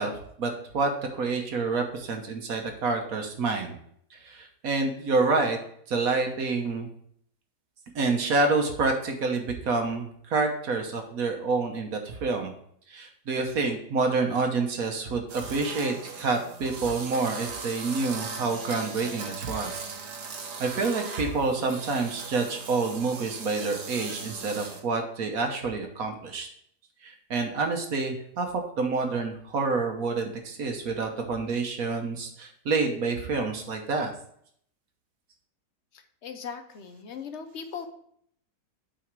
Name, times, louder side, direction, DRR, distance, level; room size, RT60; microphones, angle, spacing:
voice 1, 0.0-3.7 4.1-5.6 5.9-6.9 7.9-12.5 12.9-19.8 20.6-26.5 27.0-34.1, right 3 dB, 60° right, 4 dB, 1.4 m, -28 dB
sound 1, 15.3-24.8, right 5 dB, 80° right, 1.7 m, -39 dB
voice 2, 36.2-37.9, left 6 dB, 55° left, 7 dB, 0.9 m, -38 dB
8.9 x 4.2 x 4.6 m, 0.67 s
omnidirectional pair, 1.8 m